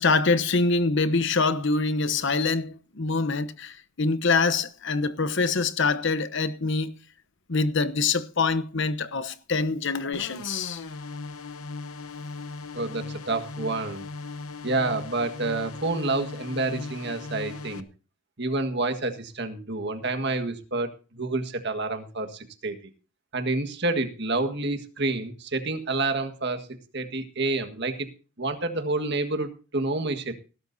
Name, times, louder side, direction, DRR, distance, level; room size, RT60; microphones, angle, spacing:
voice 1, 0.0-6.9 7.5-10.8, left 4 dB, 60° left, 1.0 m, -25 dB
sound 1, 10.1-17.8, left 3 dB, 85° left, 1.0 m, -38 dB
voice 2, 12.7-14.0 14.6-17.8 18.4-22.8 23.3-26.7 26.9-28.1 28.4-30.3, right 2 dB, 55° right, 1.7 m, -28 dB
19.0 x 12.5 x 2.7 m
head